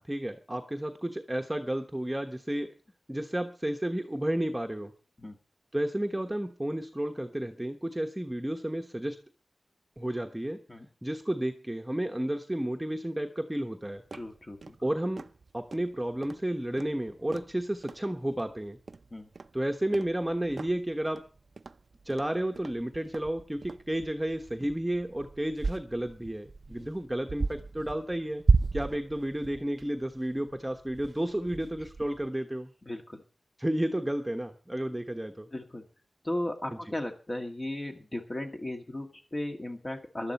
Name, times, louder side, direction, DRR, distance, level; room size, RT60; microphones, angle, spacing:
voice 1, 0.1-2.7 3.1-4.9 5.7-9.2 10.0-10.6 11.0-14.0 14.8-15.3 15.5-18.8 19.5-21.2 22.0-28.4 28.7-32.7 33.6-35.5, right 1 dB, 10° right, 4 dB, 1.2 m, -32 dB
sound 1, 13.9-32.3, right 4 dB, 60° right, 0.6 m, -35 dB
voice 2, 14.1-14.8 19.1-19.3 32.8-33.2 35.5-35.8 36.2-40.3, left 1 dB, 30° left, 3 dB, 2.0 m, -36 dB
16.5 x 12.0 x 4.3 m, 0.36 s
wide cardioid pair, 85°, 0 cm